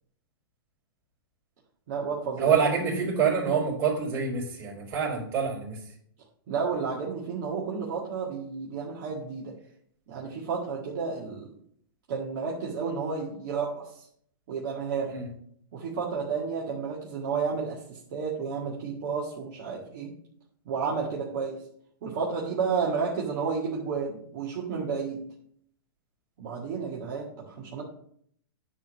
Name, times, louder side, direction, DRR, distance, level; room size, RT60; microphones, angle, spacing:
voice 1, 1.9-2.5 6.5-9.5 10.1-11.5 12.1-14.0 14.5-15.1 15.7-20.1 20.7-21.6 22.0-25.2 26.4-27.8, right 5 dB, 50° right, -4 dB, 1.8 m, -31 dB
voice 2, 2.4-5.8 15.1-15.3, right 6 dB, 30° right, -5 dB, 3.7 m, -26 dB
9.9 x 3.5 x 6.3 m, 0.66 s
hypercardioid pair, 150°, 12 cm